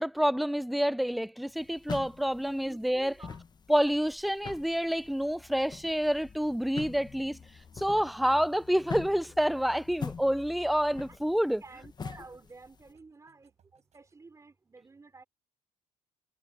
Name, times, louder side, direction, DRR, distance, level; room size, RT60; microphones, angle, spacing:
voice 1, 0.0-3.1 3.7-7.4 7.8-11.6, equal, ahead, 0.3 m, -28 dB
sound 1, 1.5-12.9, left 5 dB, 30° left, 1.1 m, -44 dB
voice 2, 2.5-3.4 6.9-7.0 8.1-8.4 11.1-11.2 11.6-15.2, right 3 dB, 20° right, 3.1 m, -51 dB
sound 2, 3.9-14.2, right 8 dB, 50° right, 6.6 m, -72 dB
cardioid pair, 95°, 14 cm